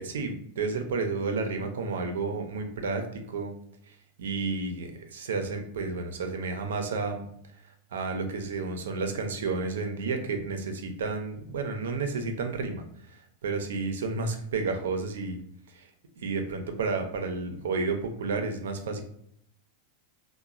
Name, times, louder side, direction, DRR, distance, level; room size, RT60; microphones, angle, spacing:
voice 1, 0.0-3.5 3.9-7.3 7.9-15.4 15.7-15.9 16.2-19.0, right 4 dB, 85° right, 6 dB, 0.5 m, -31 dB
3.0 x 2.1 x 2.4 m, 0.69 s
hypercardioid pair, 125°, 0 cm